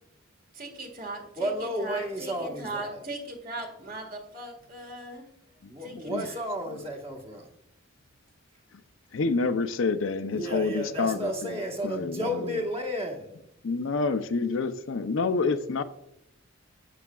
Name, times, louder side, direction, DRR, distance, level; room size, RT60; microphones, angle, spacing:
voice 1, 0.5-5.3 5.8-6.4, right 2 dB, 40° right, 1.7 m, -39 dB
voice 2, 1.4-3.0 5.7-7.4 10.3-13.4, equal, 25° right, 1.3 m, -32 dB
voice 3, 5.6-6.3 6.7-6.9 9.1-12.6 13.6-15.8, left 4 dB, 65° left, 0.5 m, -28 dB
11.0 x 8.4 x 2.3 m
head